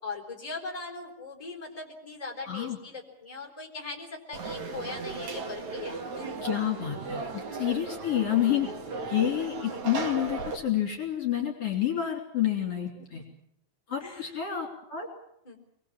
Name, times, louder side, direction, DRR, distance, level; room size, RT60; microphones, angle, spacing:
voice 1, 0.0-6.4 9.2-9.7 12.9-13.2 14.0-14.7 15.4-15.6, left 3 dB, 10° left, 1 dB, 4.1 m, -40 dB
voice 2, 2.5-2.8 6.4-8.7 9.1-13.2 13.9-15.1, left 11 dB, 45° left, 1 dB, 3.9 m, -29 dB
Conversation / Crowd, 4.3-10.6, right 4 dB, 55° right, 3.7 m, -36 dB
25.5 x 22.0 x 7.4 m, 0.81 s
omnidirectional pair, 4.0 m